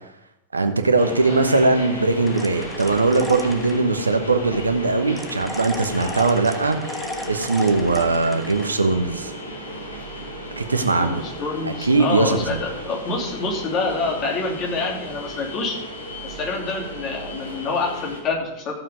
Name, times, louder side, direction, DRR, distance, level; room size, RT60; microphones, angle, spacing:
voice 1, 0.5-6.8 7.3-9.3 10.6-11.2 11.8-12.4, right 3 dB, 80° right, 7 dB, 1.1 m, -20 dB
sound 1, 1.0-18.2, equal, 75° left, 2.4 m, -35 dB
sound 2, 2.3-3.8 5.2-8.7, left 1 dB, 5° left, 1.3 m, -35 dB
voice 2, 10.9-15.8 16.2-18.8, left 3 dB, 35° left, 0 dB, 2.8 m, -27 dB
14.0 x 7.5 x 5.1 m, 0.90 s
figure-of-eight pair, 90°, 0 cm